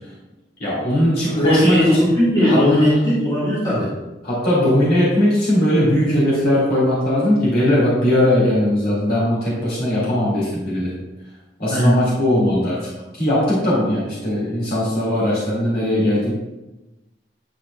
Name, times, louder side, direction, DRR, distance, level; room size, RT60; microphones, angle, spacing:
voice 1, 0.6-2.1 2.4-2.7 4.2-11.0 11.6-16.3, left 1 dB, 55° left, -7 dB, 2.2 m, -19 dB
voice 2, 1.3-3.9 11.7-12.0, equal, 25° left, -9 dB, 1.9 m, -17 dB
9.6 x 4.4 x 2.4 m, 1.0 s
head